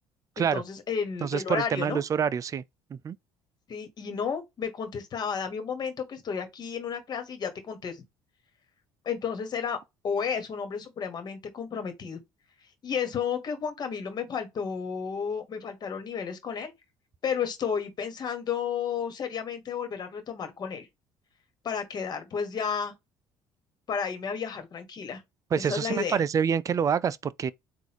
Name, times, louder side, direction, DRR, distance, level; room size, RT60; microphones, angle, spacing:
voice 1, 0.4-2.0 3.7-8.0 9.0-9.8 10.0-12.2 12.8-16.7 17.2-20.9 21.6-22.9 23.9-25.2 25.5-26.2, left 6 dB, 45° left, 1.6 m, -32 dB
voice 2, 1.2-2.6 2.9-3.2 25.5-27.5, right 7 dB, 35° right, 0.4 m, -27 dB
3.9 x 2.6 x 2.9 m
supercardioid pair, 85°, 10 cm